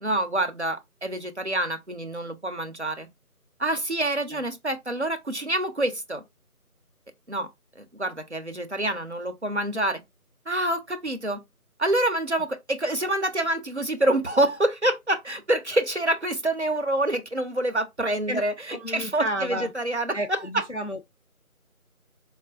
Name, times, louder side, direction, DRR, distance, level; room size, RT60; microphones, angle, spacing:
voice 1, 0.0-3.1 3.6-6.2 7.3-7.5 7.8-10.0 10.5-11.4 11.8-20.4, right 1 dB, 50° right, 0.5 m, -27 dB
voice 2, 18.7-19.7 20.1-21.0, equal, 55° left, 0.5 m, -31 dB
4.2 x 2.4 x 2.4 m
figure-of-eight pair, 175°, 45 cm